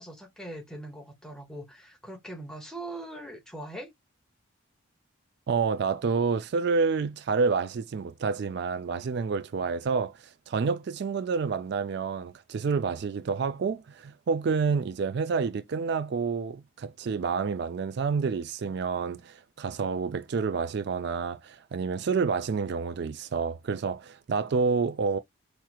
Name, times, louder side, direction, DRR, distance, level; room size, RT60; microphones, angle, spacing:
voice 1, 0.0-3.9, right 1 dB, 5° left, 0.9 m, -41 dB
voice 2, 5.5-10.2 10.5-25.2, right 5 dB, 55° right, 0.3 m, -28 dB
4.6 x 3.0 x 2.2 m
head